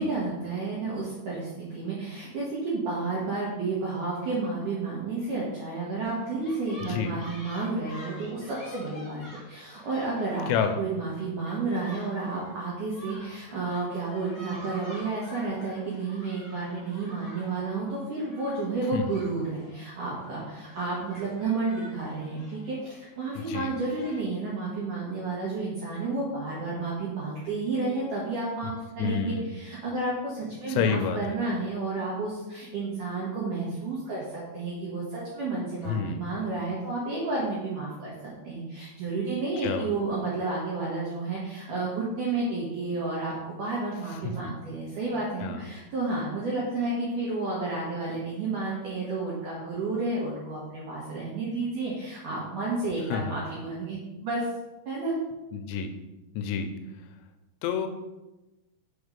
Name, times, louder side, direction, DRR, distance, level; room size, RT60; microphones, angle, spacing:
voice 1, 0.0-10.5 10.8-34.2 34.5-54.4 54.9-55.1 56.7-56.8, right 3 dB, 75° right, -6 dB, 1.9 m, -31 dB
sound 1, 6.0-24.2, equal, 60° left, 1.1 m, -48 dB
voice 2, 10.5-10.8 18.9-19.0 23.4-23.7 29.0-29.5 30.7-31.2 35.9-36.2 39.6-39.9 44.2-44.3 45.4-45.7 53.1-53.4 55.5-55.9 56.4-56.7 57.6-57.9, left 7 dB, 85° left, 7 dB, 2.8 m, -28 dB
6.2 x 4.3 x 5.1 m, 1.1 s
omnidirectional pair, 5.3 m